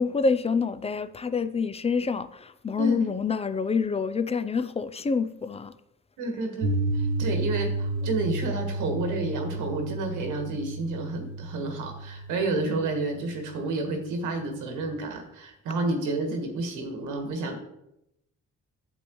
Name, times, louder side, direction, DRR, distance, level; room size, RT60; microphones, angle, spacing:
voice 1, 0.0-5.7, left 5 dB, 20° left, 0.4 m, -27 dB
voice 2, 6.2-17.6, right 2 dB, 90° right, 1.5 m, -30 dB
Piano, 6.6-14.7, right 2 dB, 75° right, 1.1 m, -32 dB
8.2 x 7.0 x 3.1 m
cardioid pair, 90°, 30 cm